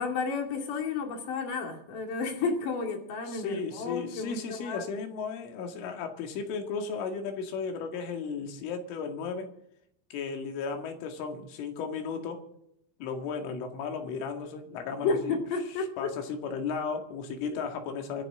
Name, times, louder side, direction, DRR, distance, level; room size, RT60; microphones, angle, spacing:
voice 1, 0.0-4.9 15.0-16.1 17.4-17.6, left 4 dB, 50° left, 3 dB, 3.6 m, -32 dB
voice 2, 3.3-9.5 10.1-12.4 13.0-15.4 16.0-18.2, left 5 dB, 80° left, 4 dB, 4.6 m, -35 dB
25.5 x 11.0 x 3.7 m, 0.75 s
omnidirectional pair, 5.5 m